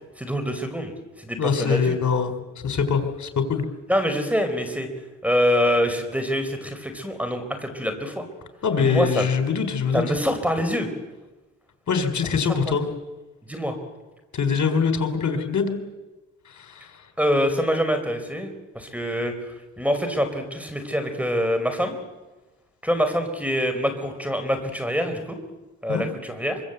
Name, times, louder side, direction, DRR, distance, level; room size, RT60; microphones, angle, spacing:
voice 1, 0.2-1.9 3.9-4.9 5.2-8.2 8.8-9.3 9.9-10.9 12.7-12.8 13.5-13.8 17.2-19.3 19.8-22.0 22.8-25.4 25.8-26.6, equal, 5° right, 8 dB, 4.6 m, -25 dB
voice 2, 1.4-3.6 8.6-10.0 11.9-12.9 14.3-15.8 16.5-16.9 25.9-26.1, left 6 dB, 65° left, 8 dB, 4.2 m, -23 dB
24.5 x 24.0 x 8.2 m, 1.1 s
cardioid pair, 75°, 31 cm